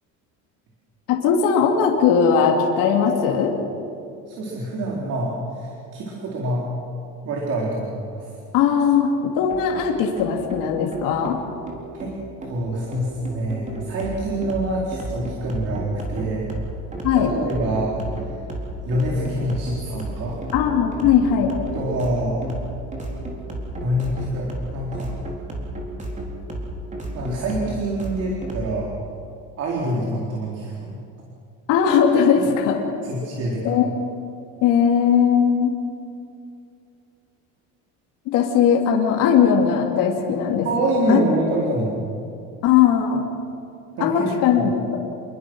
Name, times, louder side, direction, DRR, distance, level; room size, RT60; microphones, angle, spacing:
voice 1, 1.1-3.5 8.5-11.4 17.0-17.3 20.5-21.5 31.7-32.8 33.6-33.9 34.6-35.8 38.3-40.7 41.1-41.2 42.6-43.3 44.0-45.0, left 7 dB, 70° left, 0 dB, 3.1 m, -19 dB
voice 2, 4.3-6.7 7.2-8.3 11.9-12.1 12.4-16.5 17.1-18.0 18.8-20.4 21.7-22.4 23.8-25.1 27.1-28.9 29.6-31.0 32.4-32.5 33.0-33.8 40.6-41.9 44.0-44.3 44.5-44.8, right 1 dB, 45° right, -3 dB, 4.3 m, -26 dB
sound 1, 9.5-28.7, right 1 dB, 20° right, 4.2 m, -33 dB
28.5 x 22.5 x 6.4 m, 2.5 s
cardioid pair, 155°, 34 cm